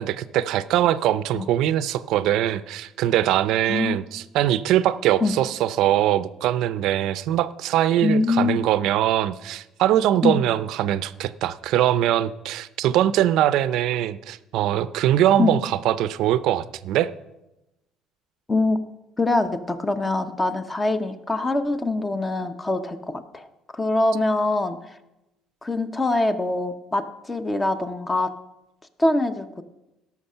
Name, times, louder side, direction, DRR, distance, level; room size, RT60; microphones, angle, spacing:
voice 1, 0.0-17.1, right 12 dB, 70° right, 15 dB, 0.5 m, -22 dB
voice 2, 3.7-4.0 5.2-5.3 8.0-8.6 10.2-10.4 15.4-15.5 18.5-18.8 19.2-23.5 23.7-24.9 25.6-28.3 29.0-29.6, left 2 dB, 15° left, 9 dB, 0.8 m, -23 dB
17.5 x 6.4 x 5.6 m, 0.96 s
cardioid pair, 140°, 0 cm